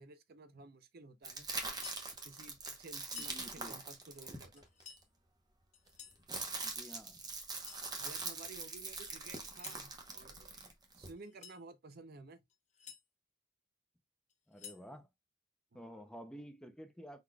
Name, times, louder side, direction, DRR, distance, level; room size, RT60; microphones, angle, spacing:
voice 1, 0.0-1.5 2.2-4.6 8.0-10.6 10.9-12.4 15.7-16.0, right 3 dB, 50° right, 0.5 m, -54 dB
sound 1, 1.2-5.0 5.9-11.1, right 3 dB, 20° right, 0.8 m, -43 dB
sound 2, 1.6-2.1 3.0-3.4 4.6-5.1 5.7-6.2 7.4-7.9 9.3-9.9 11.2-11.6 12.5-13.0 14.3-14.9, left 8 dB, 35° left, 0.9 m, -52 dB
voice 2, 3.1-3.7 6.6-7.2 14.5-15.1 15.7-17.2, equal, 5° left, 0.5 m, -51 dB
4.7 x 4.0 x 2.2 m
head